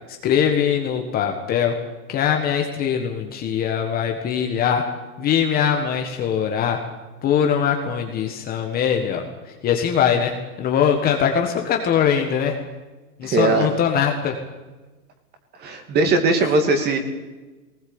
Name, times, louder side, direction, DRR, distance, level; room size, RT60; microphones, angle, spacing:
voice 1, 0.2-1.8 2.1-4.9 5.2-6.8 7.2-9.3 9.6-12.6 13.2-14.4 16.4-16.5, left 8 dB, 20° left, 3 dB, 1.5 m, -21 dB
voice 2, 13.2-13.7 15.6-17.0, right 3 dB, 20° right, 6 dB, 2.6 m, -19 dB
20.0 x 19.5 x 8.7 m, 1.2 s
hypercardioid pair, 155°, 45 cm